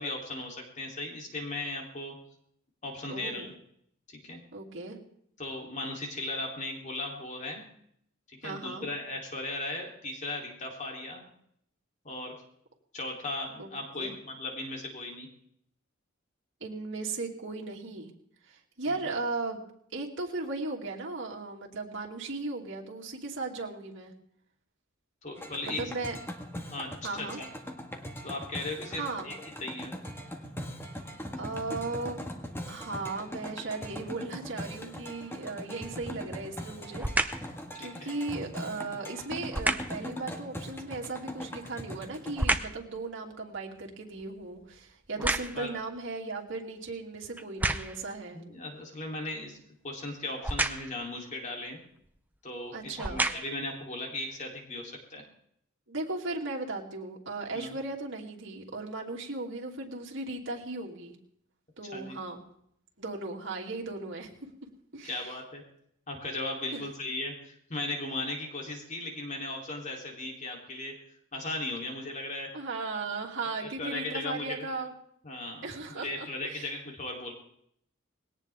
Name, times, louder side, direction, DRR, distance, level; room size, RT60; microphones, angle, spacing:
voice 1, 0.0-2.1 2.8-3.5 4.1-4.4 5.4-7.6 8.4-11.2 12.0-12.3 12.9-15.3 25.2-25.8 26.7-27.5 28.2-29.3 29.6-29.9 37.8-38.1 45.2-45.7 48.3-49.6 49.8-51.8 52.4-55.2 57.5-57.8 61.9-62.2 65.0-65.6 66.1-70.9 71.3-72.5 73.6-74.7 75.2-77.3, left 2 dB, 40° left, 0 dB, 3.4 m, -37 dB
voice 2, 3.1-3.5 4.5-5.0 8.4-8.9 13.6-13.7 14.0-14.1 16.6-18.1 18.5-19.6 19.9-24.1 25.6-26.1 27.0-27.4 29.0-29.3 31.4-32.2 32.7-48.4 52.7-53.2 55.9-61.1 61.8-62.4 63.0-64.3 64.9-65.3 66.7-66.8 72.5-74.9 75.6-76.7, right 3 dB, 65° right, -1 dB, 2.8 m, -37 dB
sound 1, 25.4-42.6, equal, 10° left, 1.7 m, -41 dB
sound 2, 35.9-36.2 37.0-37.5 39.5-40.0 41.4-42.9 43.3-45.8 46.5-46.6 47.4-48.1 50.4-51.0 52.0-52.2 52.8-53.7 54.3-54.4, right 2 dB, 10° right, 0.7 m, -31 dB
20.5 x 18.0 x 3.6 m, 0.70 s
head